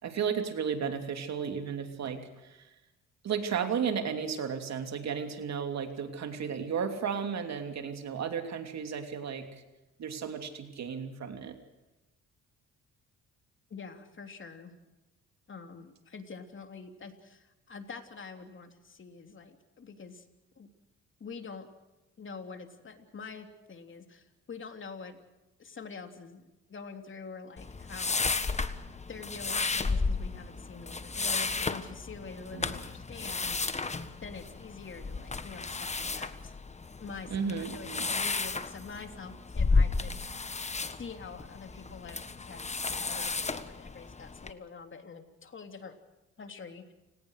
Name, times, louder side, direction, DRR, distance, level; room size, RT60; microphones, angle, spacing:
voice 1, 0.0-2.7 3.2-9.5 10.0-11.6 32.5-32.7 37.3-38.1, right 6 dB, 60° right, 6 dB, 3.0 m, -34 dB
voice 2, 13.7-14.7 15.5-20.3 20.6-20.7 21.2-21.7 22.2-25.2 25.6-28.3 29.1-33.8 34.2-36.6 37.0-40.2 41.0-46.0 46.4-46.9, left 5 dB, 40° left, 6 dB, 3.3 m, -46 dB
sound 1, 27.6-44.5, left 4 dB, 20° left, 1.4 m, -33 dB
30.0 x 18.5 x 6.6 m, 1.0 s
cardioid pair, 90°, 30 cm